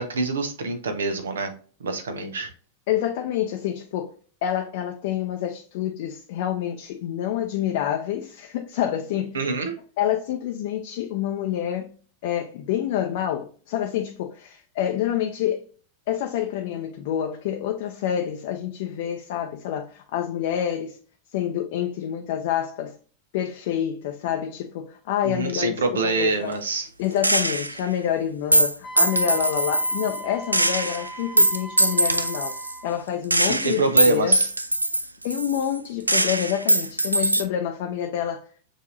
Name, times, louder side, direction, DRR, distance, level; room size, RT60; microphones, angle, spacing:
voice 1, 0.0-1.5 1.8-2.5 9.3-9.7 25.2-26.9 33.4-34.5, right 3 dB, 65° right, 0.8 m, -25 dB
voice 2, 2.9-4.1 4.4-9.4 10.0-11.9 12.2-15.7 16.1-21.0 21.3-22.9 23.3-26.5 27.0-32.6 32.8-34.4 35.2-38.4, left 10 dB, 50° left, 0.5 m, -27 dB
Gunshot gunfire, 27.2-27.8 28.5-30.2 30.5-32.8 33.3-35.8 36.1-37.4, right 1 dB, 85° right, 0.3 m, -22 dB
Wind instrument woodwind instrument, 28.8-33.0, right 1 dB, 20° left, 0.8 m, -39 dB
6.6 x 2.7 x 2.5 m
figure-of-eight pair, 90°, 0 cm